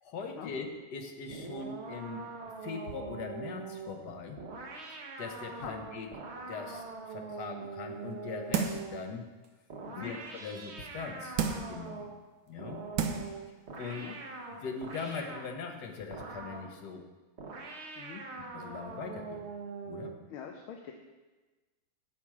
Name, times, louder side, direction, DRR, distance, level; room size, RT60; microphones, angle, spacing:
voice 1, 0.0-2.2 2.6-4.4 4.9-9.3 9.9-11.4 11.7-12.1 12.5-12.8 13.8-14.1 14.5-17.0 18.5-19.5 19.8-20.1, left 5 dB, 60° left, 5 dB, 1.4 m, -41 dB
sound 1, 1.3-9.1 9.7-12.2 12.6-15.5 16.1-16.8 17.4-20.2, right 4 dB, 45° right, 0.9 m, -43 dB
sound 2, 8.5-9.0 9.4-9.5 11.4-11.8 12.5-12.6 13.0-13.4 13.8-13.9, right 6 dB, 75° right, 1.5 m, -31 dB
voice 2, 9.8-10.1 14.0-14.2 18.0-18.2 20.3-20.9, left 8 dB, 85° left, 3 dB, 1.6 m, -43 dB
8.8 x 7.5 x 4.8 m, 1.2 s
omnidirectional pair, 2.2 m